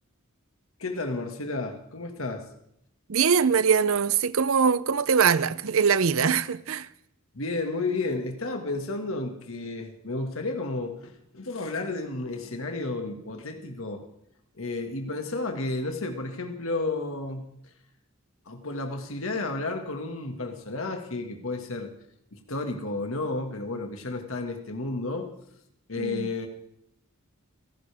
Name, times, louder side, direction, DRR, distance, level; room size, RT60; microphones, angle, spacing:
voice 1, 0.8-2.5 7.3-14.1 14.6-17.5 18.5-21.9 22.3-25.3 25.9-26.5, left 2 dB, 70° left, 2.0 m, -32 dB
voice 2, 3.1-6.9 26.0-26.3, right 6 dB, 70° right, 0.7 m, -22 dB
30.0 x 11.5 x 3.5 m
head